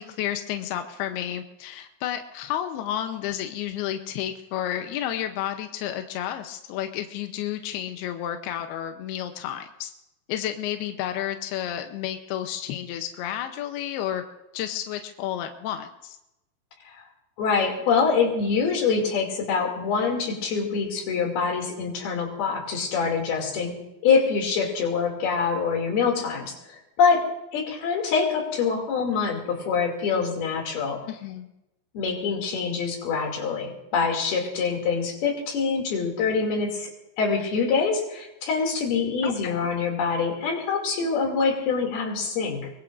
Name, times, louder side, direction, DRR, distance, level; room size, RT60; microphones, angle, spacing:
voice 1, 0.0-9.9 10.3-14.2 14.5-16.2 31.1-31.5 39.2-39.7, left 11 dB, 80° left, 6 dB, 2.4 m, -31 dB
voice 2, 17.4-23.8 24.0-31.0 31.9-36.9 37.2-42.7, left 5 dB, 55° left, 1 dB, 4.3 m, -25 dB
23.0 x 22.5 x 2.6 m, 0.90 s
omnidirectional pair, 5.4 m